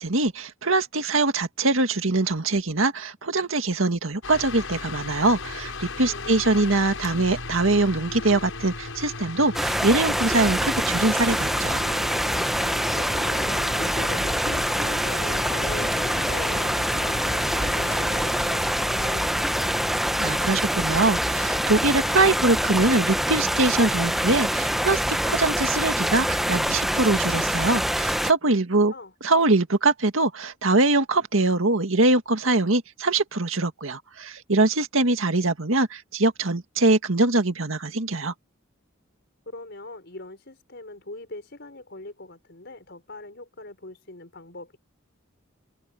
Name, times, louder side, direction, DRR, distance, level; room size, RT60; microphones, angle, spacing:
voice 1, 0.0-11.8 20.2-28.9 29.2-38.3, right 2 dB, 80° right, 2.0 m, -23 dB
sound 1, 4.2-20.0, left 3 dB, 80° left, 5.9 m, -36 dB
voice 2, 6.1-6.7 12.9-19.8 28.9-29.1 39.5-44.8, left 2 dB, 55° left, 5.2 m, -41 dB
sound 2, 9.5-28.3, equal, ahead, 0.7 m, -25 dB
open air
head